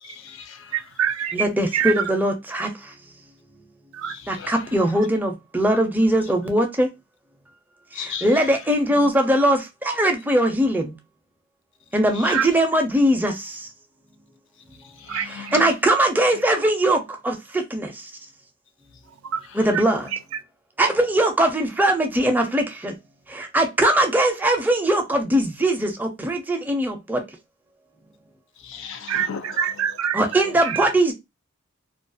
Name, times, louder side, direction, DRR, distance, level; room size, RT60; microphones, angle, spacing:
voice 1, 0.0-0.8 4.0-4.8 7.9-8.3 12.1-12.4 14.8-15.7 19.6-19.7 28.6-29.6, left 7 dB, 65° left, 0.4 m, -36 dB
voice 2, 0.7-1.5 1.7-2.0 3.9-4.1 12.3-12.5 15.1-15.6 19.2-19.5 19.7-19.8 20.1-20.4 29.1-30.9, right 9 dB, 85° right, 0.4 m, -26 dB
voice 3, 1.3-2.7 4.3-6.9 8.2-10.9 11.9-13.5 15.5-17.9 19.6-20.1 20.8-23.0 23.3-27.2 30.1-31.1, right 1 dB, 10° right, 0.5 m, -21 dB
2.3 x 2.3 x 2.5 m
head